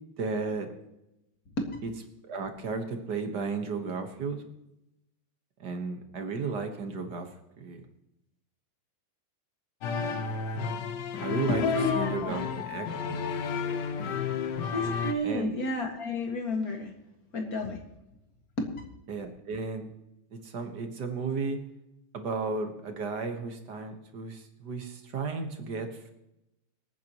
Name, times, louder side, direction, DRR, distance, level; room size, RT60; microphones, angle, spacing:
voice 1, 0.2-0.7 1.8-1.9 2.2-4.4 5.6-7.3 7.6-7.8 11.2-11.6 11.9-13.2 15.2-15.5 19.1-19.9 20.3-21.6 22.1-26.1, right 4 dB, 55° right, 6 dB, 1.9 m, -34 dB
sound 1, 9.8-15.1, left 6 dB, 60° left, 1.5 m, -32 dB
voice 2, 11.5-12.5 14.6-16.9 17.3-17.8 18.6-18.8, left 2 dB, 45° left, 3 dB, 2.3 m, -31 dB
25.5 x 9.5 x 3.0 m, 0.89 s
omnidirectional pair, 2.3 m